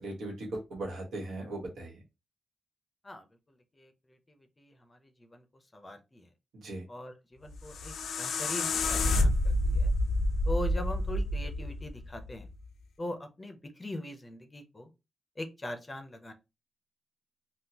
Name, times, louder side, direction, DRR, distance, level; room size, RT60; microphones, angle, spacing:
voice 1, 0.0-2.0 6.6-6.8, right 2 dB, 90° right, 0 dB, 1.3 m, -38 dB
voice 2, 3.7-6.3 6.9-9.9 10.4-12.5 13.0-14.9 15.4-16.3, left 1 dB, 20° left, 7 dB, 0.5 m, -41 dB
sound 1, 7.4-12.5, left 1 dB, 90° left, 0.4 m, -29 dB
3.6 x 2.2 x 2.8 m, 0.26 s
wide cardioid pair, 135°, 0 cm